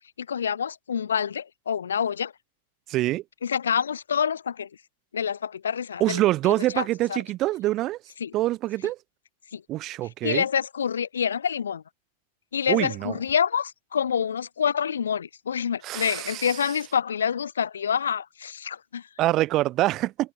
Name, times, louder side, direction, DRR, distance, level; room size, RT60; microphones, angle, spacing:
voice 1, 0.2-2.3 3.4-4.7 5.1-6.2 6.7-7.2 8.2-8.3 9.5-9.6 10.2-11.8 12.5-19.1, left 7 dB, 70° left, 0.3 m, -27 dB
voice 2, 2.9-3.2 6.0-8.0 8.3-9.0 9.7-10.4 12.7-13.2 15.8-16.6 19.2-20.3, right 16 dB, 35° right, 0.4 m, -25 dB
figure-of-eight pair, 90°, 0 cm